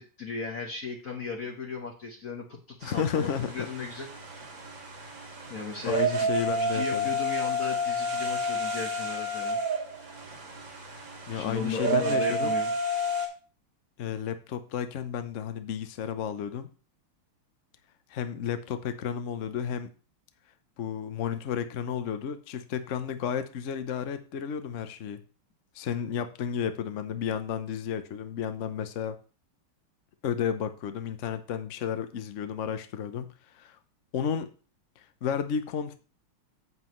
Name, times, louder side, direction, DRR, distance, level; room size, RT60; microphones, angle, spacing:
voice 1, 0.0-4.1 5.5-6.2 6.6-9.6 11.3-12.7, left 4 dB, 45° left, 0 dB, 1.4 m, -36 dB
voice 2, 2.8-3.7 5.8-7.1 11.3-12.5 14.0-16.7 18.1-19.9 20.8-25.2 25.7-29.2 30.2-33.8 34.1-34.5 35.2-35.9, left 8 dB, 65° left, 9 dB, 0.7 m, -32 dB
sound 1, 2.8-13.3, right 1 dB, 60° right, 2.8 m, -30 dB
9.4 x 7.9 x 3.1 m, 0.36 s
omnidirectional pair, 2.4 m